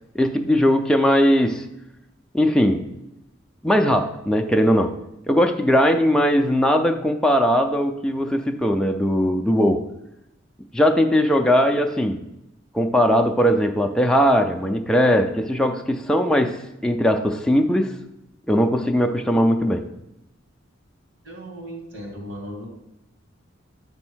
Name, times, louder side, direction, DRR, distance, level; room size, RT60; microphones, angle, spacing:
voice 1, 0.1-1.6 2.3-2.9 3.6-4.9 5.3-9.8 10.7-12.2 12.7-17.9 18.5-19.9, equal, 5° left, 3 dB, 0.4 m, -19 dB
voice 2, 21.2-22.7, equal, 75° right, -1 dB, 2.3 m, -36 dB
8.6 x 3.6 x 6.1 m, 0.87 s
head